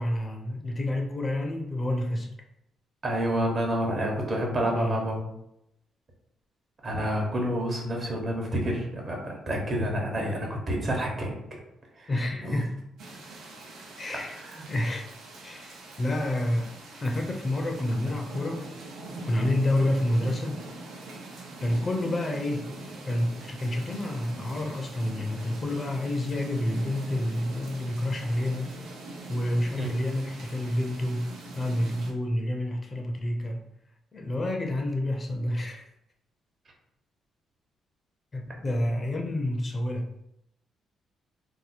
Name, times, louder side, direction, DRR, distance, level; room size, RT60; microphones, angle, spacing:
voice 1, 0.0-2.3 4.6-5.0 12.1-12.7 14.0-14.4 14.7-15.1 15.4-18.6 19.2-20.6 21.6-22.7 23.1-28.8 29.3-33.6 34.1-35.9 38.3-40.1, left 1 dB, 35° left, 2 dB, 0.5 m, -29 dB
voice 2, 3.0-5.2 6.8-11.3 12.0-12.1 12.4-12.6 14.4-14.6 29.8-29.9, equal, 40° right, -1 dB, 1.0 m, -29 dB
sound 1, 13.0-32.1, right 2 dB, 80° right, 0.8 m, -43 dB
2.7 x 2.1 x 4.1 m, 0.82 s
cardioid pair, 90°, 0 cm